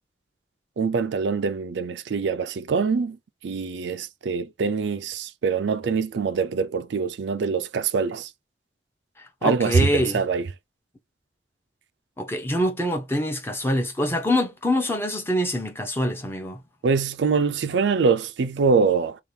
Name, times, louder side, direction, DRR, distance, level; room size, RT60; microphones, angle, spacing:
voice 1, 0.8-3.2 3.4-8.3 9.4-10.5 16.8-19.2, right 5 dB, 75° right, 0.4 m, -24 dB
voice 2, 9.4-10.2 12.2-16.6, left 1 dB, 15° left, 0.8 m, -25 dB
2.8 x 2.4 x 3.2 m
head